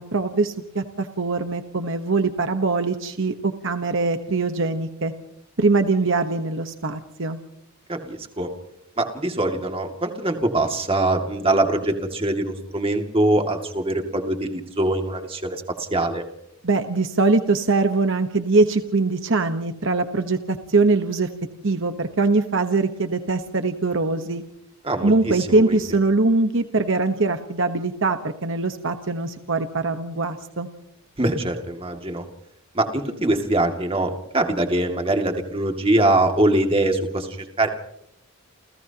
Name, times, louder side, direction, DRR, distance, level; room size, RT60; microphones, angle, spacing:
voice 1, 0.0-5.1 5.6-7.4 16.6-21.3 21.6-24.4 25.0-30.7, right 3 dB, 60° right, 7 dB, 1.2 m, -22 dB
voice 2, 7.9-8.5 9.0-16.2 24.8-25.8 31.2-32.2 32.7-37.7, right 1 dB, 25° right, 4 dB, 2.3 m, -23 dB
29.5 x 29.5 x 3.0 m, 0.76 s
head